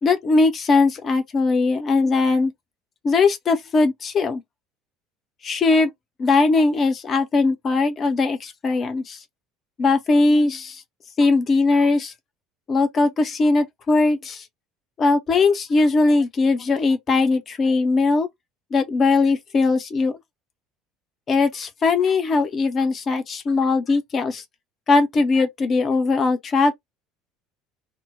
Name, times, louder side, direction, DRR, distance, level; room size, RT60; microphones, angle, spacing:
voice 1, 0.0-2.5 3.0-4.4 5.4-5.9 6.2-9.2 9.8-10.8 11.2-12.1 12.7-14.4 15.0-18.3 18.7-20.2 21.3-24.4 24.9-26.7, left 3 dB, 35° left, 0.7 m, -20 dB
2.2 x 2.1 x 3.4 m
figure-of-eight pair, 65°, 0 cm